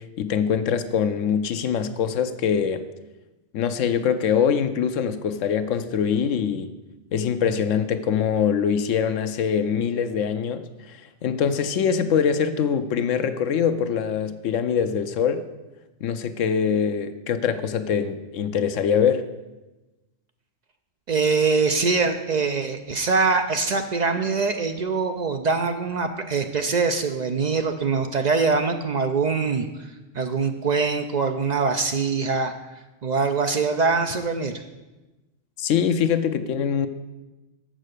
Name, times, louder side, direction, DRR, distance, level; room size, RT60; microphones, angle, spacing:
voice 1, 0.0-2.8 3.5-6.7 7.1-15.4 16.0-19.2 35.6-36.9, left 7 dB, 80° left, 11 dB, 1.0 m, -23 dB
voice 2, 21.1-29.7 30.1-32.5 33.0-34.5, right 4 dB, 60° right, 6 dB, 0.4 m, -23 dB
7.4 x 6.3 x 6.5 m, 1.1 s
omnidirectional pair, 1.3 m